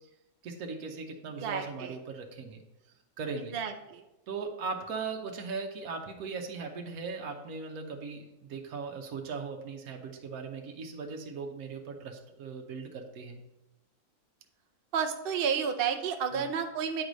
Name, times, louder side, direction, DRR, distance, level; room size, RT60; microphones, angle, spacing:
voice 1, 0.4-2.6 3.2-3.5 4.3-13.4 16.3-16.5, right 4 dB, 70° right, 2 dB, 1.3 m, -38 dB
voice 2, 1.4-2.0 3.5-4.0 14.9-17.0, right 7 dB, 55° right, 4 dB, 0.6 m, -31 dB
9.0 x 4.7 x 3.9 m, 0.94 s
omnidirectional pair, 1.6 m